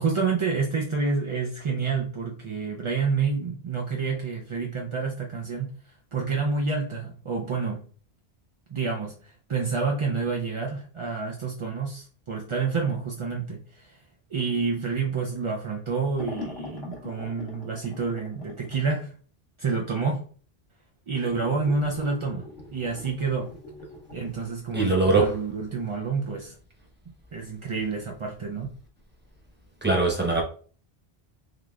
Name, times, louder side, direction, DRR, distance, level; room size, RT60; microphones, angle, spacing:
voice 1, 0.0-7.8 8.7-14.0 14.3-19.2 19.6-20.2 21.1-23.5 24.1-26.6 27.3-28.7, right 4 dB, 50° right, 0.3 m, -28 dB
sound 1, 16.2-18.9 21.2-24.3, left 3 dB, 80° left, 1.1 m, -42 dB
voice 2, 24.7-25.4 29.8-30.4, right 3 dB, 10° right, 0.9 m, -21 dB
3.9 x 3.1 x 2.3 m
omnidirectional pair, 1.1 m